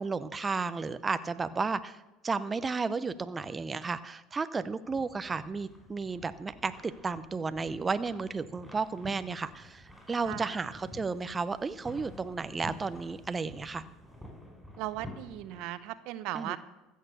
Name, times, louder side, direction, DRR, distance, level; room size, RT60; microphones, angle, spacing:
voice 1, 0.0-13.8 16.3-16.6, right 4 dB, 25° right, 12 dB, 0.6 m, -33 dB
sound 1, 4.8-15.6, left 1 dB, ahead, 4.8 m, -50 dB
voice 2, 14.8-16.6, right 15 dB, 65° right, 14 dB, 0.7 m, -37 dB
15.0 x 6.6 x 6.8 m, 1.0 s
hypercardioid pair, 85°, 0 cm